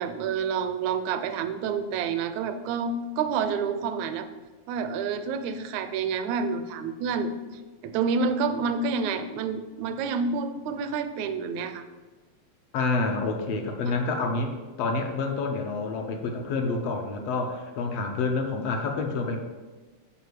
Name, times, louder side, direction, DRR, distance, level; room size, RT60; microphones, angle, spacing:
voice 1, 0.0-4.3 4.7-7.3 7.8-11.8, right 5 dB, 80° right, 9 dB, 1.9 m, -28 dB
voice 2, 12.7-19.4, left 3 dB, 70° left, 4 dB, 1.7 m, -28 dB
6.9 x 5.1 x 6.4 m, 1.3 s
omnidirectional pair, 3.4 m